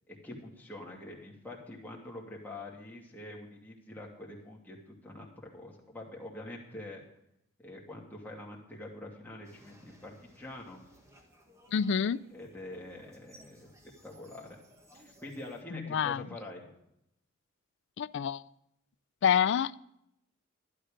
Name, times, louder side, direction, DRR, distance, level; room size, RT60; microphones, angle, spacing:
voice 1, 0.1-7.0 7.6-10.8 12.3-13.7 14.0-14.6 14.9-16.7, left 1 dB, 10° left, -3 dB, 2.5 m, -45 dB
sound 1, 9.4-15.6, equal, 15° right, 1.6 m, -60 dB
voice 2, 11.7-12.2 15.7-16.2 18.0-18.4 19.2-19.8, left 7 dB, 60° left, 19 dB, 0.4 m, -27 dB
12.0 x 11.5 x 5.1 m, 0.78 s
head